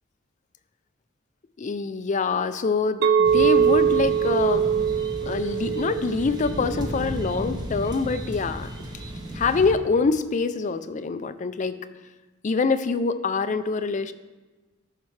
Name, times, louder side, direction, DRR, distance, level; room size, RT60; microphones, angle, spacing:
voice 1, 1.6-4.7 5.2-8.7 9.3-11.8 12.4-14.1, left 4 dB, 40° left, 12 dB, 0.4 m, -25 dB
Chink clink, 3.0-7.3, right 7 dB, 65° right, 0.5 m, -23 dB
sound 1, 3.2-9.7, equal, 20° right, 0.9 m, -34 dB
13.5 x 5.8 x 3.2 m, 1.2 s
head